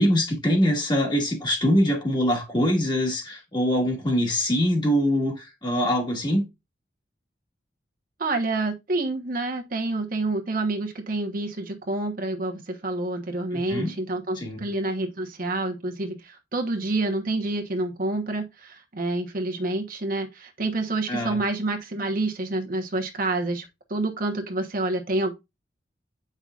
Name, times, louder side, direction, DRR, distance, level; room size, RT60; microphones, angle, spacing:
voice 1, 0.0-6.5 13.5-13.9 14.3-14.6 21.1-21.4, equal, 25° left, 1.7 m, -23 dB
voice 2, 8.2-25.3, right 2 dB, 50° right, 1.1 m, -28 dB
8.8 x 5.5 x 2.5 m
head